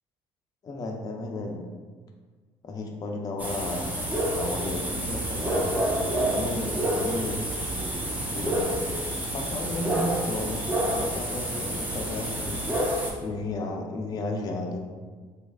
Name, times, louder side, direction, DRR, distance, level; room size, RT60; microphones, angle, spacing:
voice 1, 0.6-1.6 2.6-3.9 4.3-7.5 8.3-9.0 9.3-14.8, left 2 dB, 35° left, 1 dB, 0.4 m, -34 dB
sound 1, 3.4-13.1, right 1 dB, 15° right, 0.8 m, -28 dB
3.2 x 3.1 x 2.2 m, 1.5 s
supercardioid pair, 75°, 12 cm